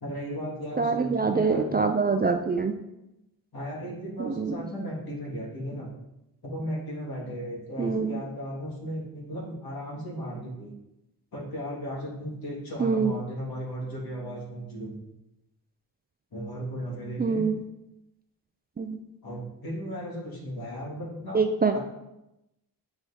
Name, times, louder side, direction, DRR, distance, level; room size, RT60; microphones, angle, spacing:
voice 1, 0.0-1.9 3.5-5.9 6.4-10.7 11.3-15.0 16.3-17.4 19.2-21.4 21.7-21.8, equal, 60° left, -4 dB, 2.1 m, -36 dB
voice 2, 0.8-2.7 4.2-4.6 7.8-8.2 12.8-13.1 17.2-17.5 18.8-19.0 21.3-21.8, right 4 dB, 25° right, 6 dB, 0.4 m, -25 dB
7.8 x 4.5 x 2.8 m, 0.89 s
cardioid pair, 85°, 41 cm